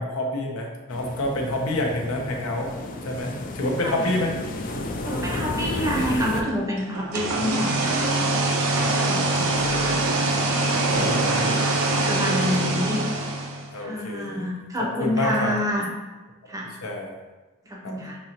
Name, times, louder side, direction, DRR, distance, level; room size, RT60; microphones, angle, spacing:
voice 1, 0.0-2.7 3.0-4.3 5.5-6.0 8.7-10.1 10.6-11.8 12.2-13.1 13.7-14.5 15.0-15.5 16.8-17.2 17.8-18.0, left 1 dB, 85° left, 1 dB, 0.7 m, -29 dB
sound 1, 0.9-6.4, left 2 dB, 40° left, 0.4 m, -32 dB
voice 2, 5.0-7.9 9.0-10.0 10.8-11.5 12.1-13.1 13.8-15.9 16.5-16.7 17.6-18.2, equal, 15° right, -2 dB, 0.6 m, -28 dB
sound 2, 6.9-13.7, right 2 dB, 90° right, 0.6 m, -23 dB
5.3 x 2.9 x 2.8 m, 1.2 s
head